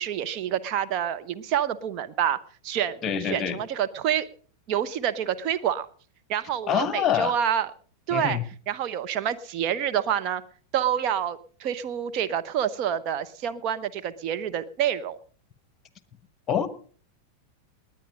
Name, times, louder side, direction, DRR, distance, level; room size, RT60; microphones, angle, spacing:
voice 1, 0.0-2.4 2.6-4.3 4.7-5.9 6.3-7.7 8.1-8.4 8.7-10.4 10.7-15.2, right 9 dB, 40° right, 10 dB, 1.0 m, -27 dB
voice 2, 3.0-3.6 6.7-7.3 8.1-8.4 16.5-16.7, left 9 dB, 25° left, 15 dB, 1.3 m, -25 dB
19.5 x 9.2 x 5.0 m, 0.44 s
figure-of-eight pair, 90°, 0 cm